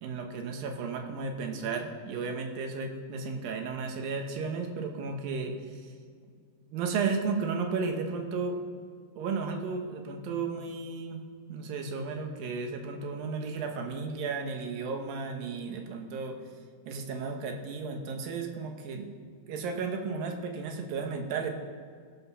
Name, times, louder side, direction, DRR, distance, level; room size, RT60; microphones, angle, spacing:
voice 1, 0.0-5.8 6.7-8.6 9.2-11.2 11.5-16.4 16.9-19.1 19.5-21.5, right 4 dB, 70° right, 4 dB, 2.7 m, -34 dB
19.0 x 6.5 x 5.5 m, 2.1 s
omnidirectional pair, 4.5 m